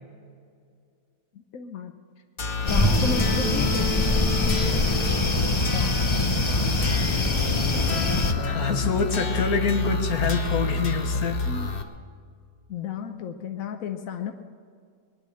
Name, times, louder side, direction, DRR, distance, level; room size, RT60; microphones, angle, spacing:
voice 1, 1.3-1.9 2.6-4.7 5.6-6.0 7.4-8.7 11.5-11.7 12.7-14.3, left 6 dB, 70° left, 5 dB, 1.3 m, -34 dB
sound 1, 2.4-11.8, left 2 dB, 40° left, 1.2 m, -28 dB
sound 2, 2.7-8.3, left 3 dB, 25° left, 0.7 m, -24 dB
Bowed string instrument, 2.8-7.0, right 4 dB, 15° right, 2.2 m, -31 dB
voice 2, 8.3-11.4, left 6 dB, 85° left, 5 dB, 1.8 m, -26 dB
21.5 x 10.5 x 6.4 m, 2.1 s
omnidirectional pair, 1.5 m